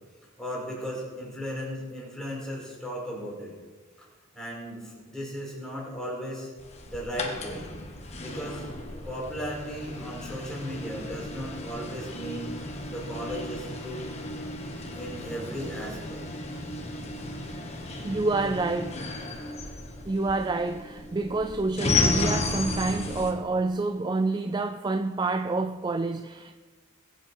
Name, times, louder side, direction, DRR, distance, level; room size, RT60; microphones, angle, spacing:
voice 1, 0.4-3.5 4.3-6.5 6.8-7.7 8.2-8.7 9.0-12.5 12.9-14.1 14.9-16.2 17.1-17.2, equal, 5° left, 4.9 m, -36 dB
sound 1, 6.6-23.3, left 2 dB, 30° left, 1.5 m, -34 dB
voice 2, 18.0-19.1 20.1-26.6, right 3 dB, 20° right, 0.4 m, -28 dB
20.5 x 9.1 x 4.7 m
head